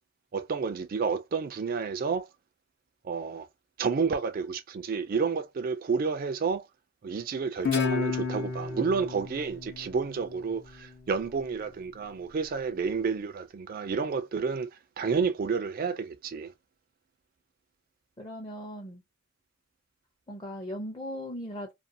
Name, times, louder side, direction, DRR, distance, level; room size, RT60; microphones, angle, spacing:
voice 1, 0.3-2.3 3.0-3.5 3.8-6.7 7.0-14.7 15.0-16.5, right 5 dB, 50° right, 0.4 m, -30 dB
Guitar, 7.6-10.9, left 5 dB, 60° left, 0.7 m, -32 dB
voice 2, 18.2-19.0 20.3-21.7, equal, 25° left, 0.6 m, -38 dB
2.5 x 2.3 x 2.6 m
head